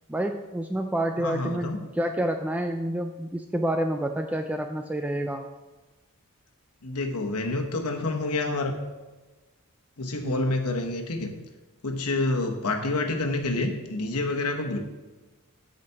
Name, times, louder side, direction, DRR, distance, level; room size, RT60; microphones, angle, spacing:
voice 1, 0.1-5.5 10.2-10.4, right 1 dB, 5° right, 5 dB, 0.3 m, -28 dB
voice 2, 1.2-1.8 6.8-8.7 10.0-11.3 11.8-14.8, left 2 dB, 85° left, 3 dB, 1.1 m, -28 dB
8.2 x 5.1 x 5.8 m, 1.2 s
head